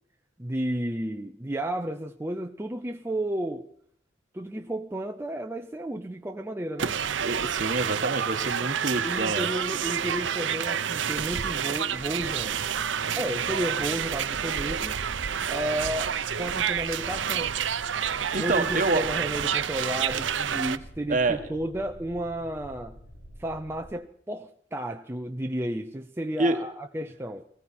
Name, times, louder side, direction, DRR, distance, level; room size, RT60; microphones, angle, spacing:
voice 1, 0.4-3.7 4.3-7.0 9.0-12.6 13.2-15.0 15.5-17.5 18.4-23.0 23.4-27.4, right 1 dB, 15° right, 0.6 m, -32 dB
sound 1, 6.8-20.8, right 8 dB, 90° right, 0.7 m, -29 dB
voice 2, 7.2-9.5 18.3-19.0 21.1-21.4 26.4-26.6, right 2 dB, 45° right, 1.4 m, -27 dB
sound 2, 11.1-23.9, equal, 65° left, 7.0 m, -49 dB
20.0 x 15.0 x 4.3 m
head